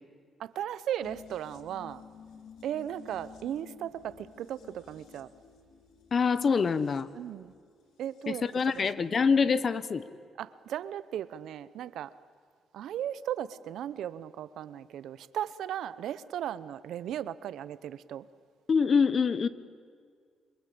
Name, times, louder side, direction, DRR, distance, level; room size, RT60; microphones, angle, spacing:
voice 1, 0.4-2.0 2.6-5.3 7.1-7.5 8.0-8.4 8.8-9.1 10.4-12.1 12.7-18.3, right 10 dB, 80° right, 16 dB, 0.9 m, -36 dB
sound 1, 1.0-8.9 9.2-9.3, left 6 dB, 80° left, 2.5 m, -54 dB
voice 2, 6.1-7.1 8.3-10.0 18.7-19.5, left 5 dB, 45° left, 15 dB, 1.3 m, -25 dB
27.5 x 24.0 x 8.7 m, 2.1 s
cardioid pair, 80°, 0 cm